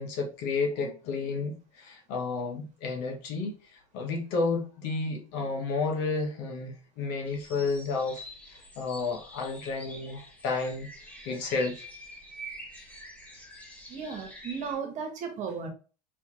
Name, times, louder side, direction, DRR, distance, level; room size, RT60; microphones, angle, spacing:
voice 1, 0.0-3.5 3.9-8.2 8.7-10.9 11.2-11.8, left 4 dB, 60° left, 1.6 m, -31 dB
sound 1, 7.2-14.7, equal, 10° left, 1.5 m, -47 dB
voice 2, 13.9-15.7, right 6 dB, 40° right, 1.5 m, -35 dB
4.2 x 3.5 x 3.2 m
supercardioid pair, 120°, 19 cm